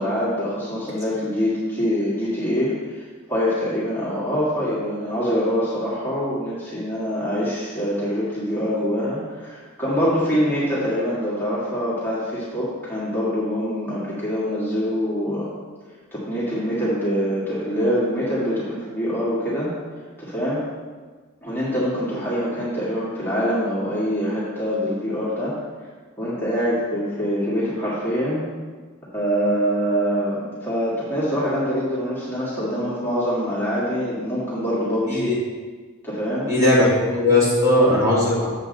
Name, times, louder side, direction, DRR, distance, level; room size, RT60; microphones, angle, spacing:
voice 1, 0.0-15.5 16.1-19.7 20.2-20.6 21.4-25.5 26.2-28.5 29.1-35.3 36.0-36.5, equal, 10° left, -10 dB, 1.9 m, -24 dB
voice 2, 36.5-38.5, left 1 dB, 15° right, -8 dB, 2.5 m, -18 dB
7.7 x 7.4 x 4.0 m, 1.4 s
head